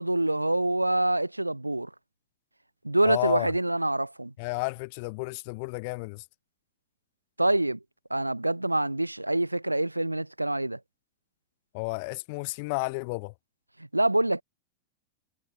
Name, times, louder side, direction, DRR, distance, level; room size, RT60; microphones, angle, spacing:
voice 1, 0.0-1.9 2.8-4.3 7.4-7.8 8.1-10.8 13.9-14.4, right 1 dB, 85° right, 3.4 m, -26 dB
voice 2, 3.0-3.5 4.4-6.2 11.7-13.3, left 30 dB, 45° left, 4.5 m, -32 dB
figure-of-eight pair, 90°, 0 cm